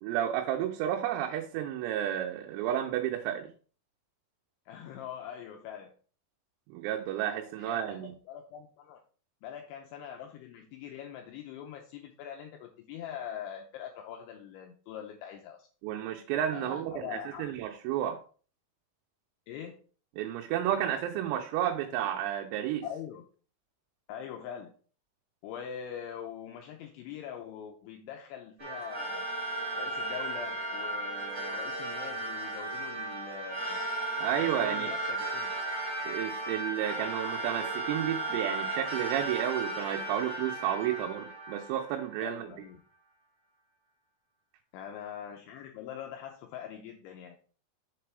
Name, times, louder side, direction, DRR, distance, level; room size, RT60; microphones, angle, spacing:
voice 1, 0.0-3.5 6.7-8.1 15.8-17.1 17.4-18.2 20.2-22.8 34.2-34.9 36.0-42.5, right 11 dB, 90° right, 3.5 m, -31 dB
voice 2, 4.7-5.9 7.6-9.0 9.4-15.7 16.5-17.5 19.5-19.8 22.8-23.2 24.1-24.7 25.4-29.3 29.7-33.8 34.4-35.5 40.9-41.1 42.2-42.8 44.7-47.4, left 9 dB, 80° left, 2.8 m, -43 dB
sound 1, 28.6-42.4, right 2 dB, 20° right, 3.0 m, -35 dB
7.5 x 6.8 x 3.4 m
omnidirectional pair, 5.9 m